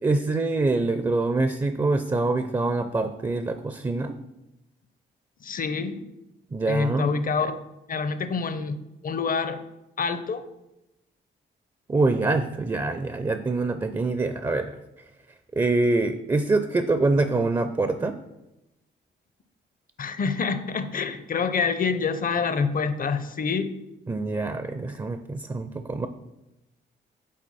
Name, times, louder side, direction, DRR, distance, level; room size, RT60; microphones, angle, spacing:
voice 1, 0.0-4.1 6.5-7.1 11.9-14.7 15.5-18.2 24.1-26.1, right 3 dB, 20° right, 9 dB, 0.4 m, -25 dB
voice 2, 5.4-6.0 6.7-7.6 7.9-8.8 9.0-9.6 10.0-10.4 20.0-23.7, left 5 dB, 45° left, 11 dB, 0.6 m, -26 dB
7.6 x 4.0 x 4.1 m, 0.93 s
cardioid pair, 70°, 20 cm